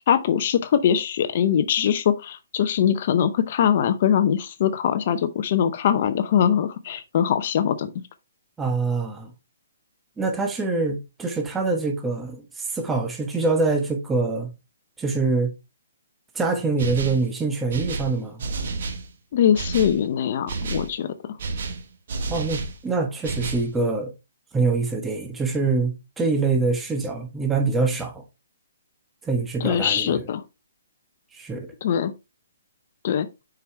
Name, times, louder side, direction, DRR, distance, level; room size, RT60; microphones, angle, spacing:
voice 1, 0.1-7.9 19.3-21.1 29.6-30.4 31.8-32.1 33.0-33.3, left 9 dB, 50° left, 0.7 m, -22 dB
voice 2, 8.6-9.3 10.2-14.5 15.0-15.5 16.3-18.4 22.3-24.1 24.5-28.2 29.2-30.2 31.3-31.7, right 3 dB, 10° right, 1.0 m, -25 dB
sound 1, 16.8-17.3 17.7-19.1 19.5-20.0 20.5-20.9 21.4-22.8 23.2-23.7, right 3 dB, 60° right, 1.2 m, -30 dB
6.8 x 4.8 x 3.3 m
hypercardioid pair, 140°, 0 cm